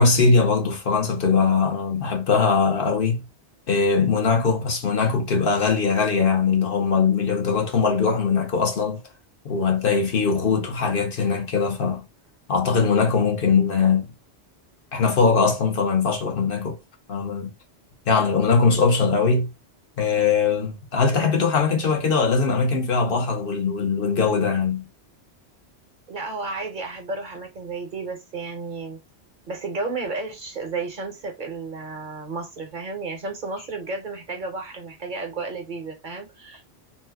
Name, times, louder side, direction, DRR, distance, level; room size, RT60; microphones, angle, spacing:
voice 1, 0.0-3.3 3.7-9.0 9.4-12.0 12.5-14.1 14.9-16.8 17.1-17.5 18.1-19.5 20.0-24.8, left 5 dB, 60° left, 0.9 m, -21 dB
voice 2, 26.1-29.0 29.5-36.6, right 3 dB, 50° right, 0.8 m, -32 dB
2.8 x 2.1 x 3.3 m
omnidirectional pair, 1.1 m